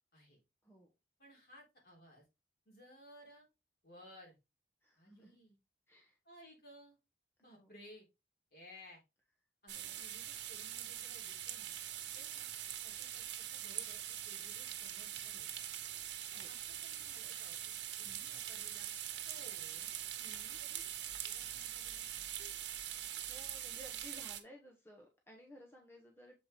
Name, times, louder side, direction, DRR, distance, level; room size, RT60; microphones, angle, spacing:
voice 1, 1.2-2.3 2.7-3.5 3.8-4.4 5.0-5.6 6.2-7.0 7.4-8.1 8.5-9.0 9.6-11.8 12.1-12.5 12.8-15.7 16.3-17.6 18.0-18.9 19.3-20.0 20.6-20.9 21.2-22.3, equal, 55° left, -1 dB, 3.7 m, -59 dB
voice 2, 4.8-5.4 5.9-6.2 7.5-7.7 9.7-10.1 16.3-16.5 20.2-20.6 22.8-26.5, equal, 15° left, 1 dB, 1.1 m, -57 dB
sound 1, 9.7-24.4, right 11 dB, 90° right, 1.1 m, -43 dB
7.3 x 4.4 x 3.5 m, 0.24 s
head